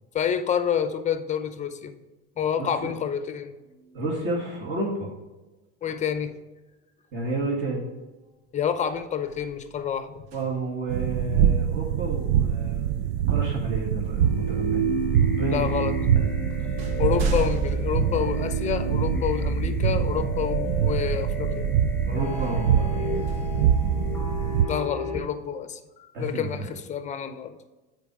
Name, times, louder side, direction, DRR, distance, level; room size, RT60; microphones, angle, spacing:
voice 1, 0.1-2.0 2.4-4.0 5.8-6.4 8.5-10.2 15.5-15.9 16.5-16.7 17.0-21.7 24.7-25.8 26.2-27.6, left 8 dB, 25° left, 9 dB, 0.6 m, -28 dB
voice 2, 2.6-2.9 3.9-5.1 7.1-7.9 10.3-12.8 13.3-14.9 15.2-15.9 22.1-23.2 26.1-26.7, right 2 dB, 35° right, -3 dB, 2.0 m, -30 dB
sound 1, 8.2-8.5 8.8-10.9 13.1-13.2 14.0-14.8 15.7-15.8 16.2-19.0 19.6-19.7 22.3-24.4, right 4 dB, 85° right, 1.3 m, -35 dB
sound 2, 10.9-24.7, right 9 dB, 70° right, 0.5 m, -25 dB
sound 3, 14.2-25.2, equal, 5° left, 1.3 m, -31 dB
8.9 x 4.6 x 4.8 m, 1.2 s
supercardioid pair, 135°, 31 cm